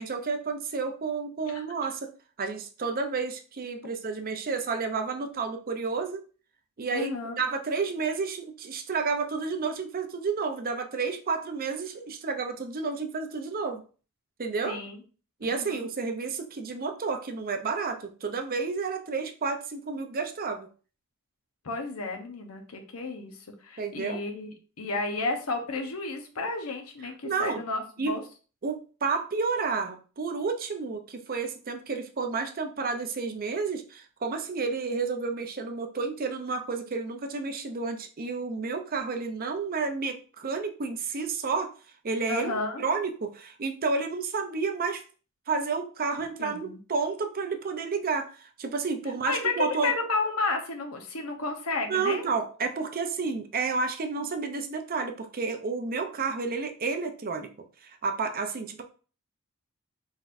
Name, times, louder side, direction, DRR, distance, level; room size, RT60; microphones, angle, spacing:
voice 1, 0.0-2.1 2.4-6.2 6.8-13.8 14.4-14.8 15.4-20.7 23.8-24.2 27.2-27.6 28.0-28.2 28.6-41.7 42.0-42.5 42.8-45.0 45.5-49.9 51.9-57.5 57.8-58.8, right 4 dB, 45° right, 6 dB, 0.6 m, -31 dB
voice 2, 6.9-7.4 14.6-15.0 15.4-15.9 21.6-28.2 42.3-42.8 46.4-46.8 49.3-52.3, left 3 dB, 75° left, 4 dB, 0.9 m, -32 dB
4.4 x 4.0 x 2.5 m, 0.38 s
head